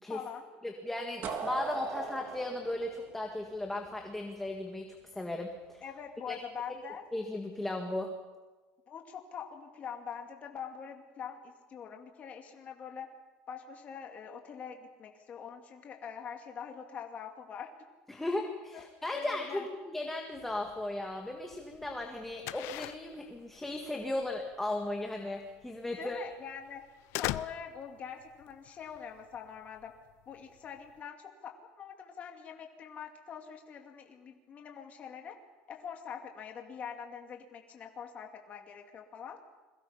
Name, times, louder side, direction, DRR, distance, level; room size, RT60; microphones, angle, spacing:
voice 1, 0.1-0.5 5.8-7.1 8.9-13.1 13.5-17.7 18.7-18.8 19.1-19.7 26.0-26.8 27.2-29.9 30.3-35.4 35.7-39.4, left 7 dB, 30° left, 3 dB, 2.3 m, -44 dB
voice 2, 0.6-5.8 6.3-6.4 7.1-8.1 18.1-26.2, left 1 dB, 5° left, 2 dB, 1.8 m, -36 dB
sound 1, 1.2-4.1, right 5 dB, 45° right, 3.1 m, -39 dB
sound 2, 20.3-31.0, left 17 dB, 60° left, 0.7 m, -43 dB
30.0 x 22.5 x 5.7 m, 1.2 s
cardioid pair, 165°, 5 cm